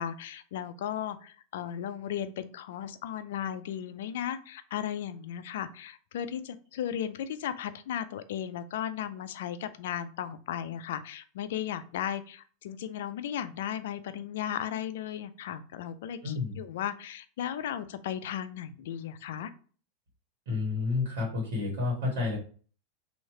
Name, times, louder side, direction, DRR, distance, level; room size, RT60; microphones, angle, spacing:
voice 1, 0.0-19.5, left 10 dB, 75° left, 12 dB, 0.4 m, -36 dB
voice 2, 16.2-16.6 20.5-22.4, left 4 dB, 75° right, -1 dB, 1.5 m, -30 dB
3.1 x 2.8 x 4.2 m, 0.42 s
hypercardioid pair, 110°, 0 cm